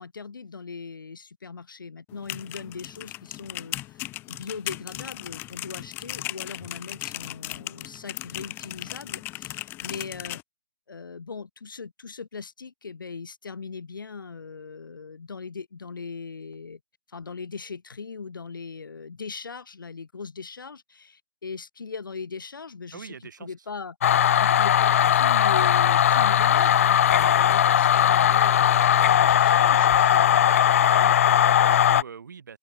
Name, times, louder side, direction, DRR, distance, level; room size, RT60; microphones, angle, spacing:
voice 1, 0.0-10.4 10.9-16.8 17.1-24.0 24.4-30.5, left 5 dB, 65° left, 3.8 m, -39 dB
sound 1, 2.1-10.4, left 17 dB, 20° left, 1.4 m, -37 dB
voice 2, 22.9-23.5 30.9-32.6, right 6 dB, 55° right, 5.1 m, -42 dB
sound 2, 24.0-32.0, left 10 dB, 40° left, 0.4 m, -19 dB
open air
figure-of-eight pair, 135°, 12 cm